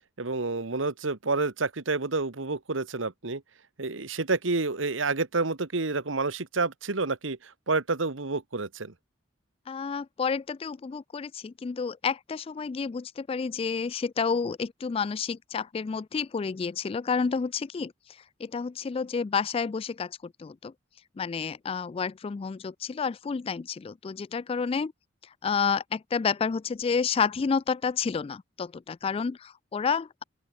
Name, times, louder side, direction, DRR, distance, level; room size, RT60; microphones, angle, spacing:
voice 1, 0.2-3.4 3.8-8.9, right 3 dB, 80° right, 1.4 m, -29 dB
voice 2, 9.7-17.9 18.4-20.7 21.2-24.9 25.4-30.2, left 5 dB, 30° left, 0.3 m, -30 dB
open air
head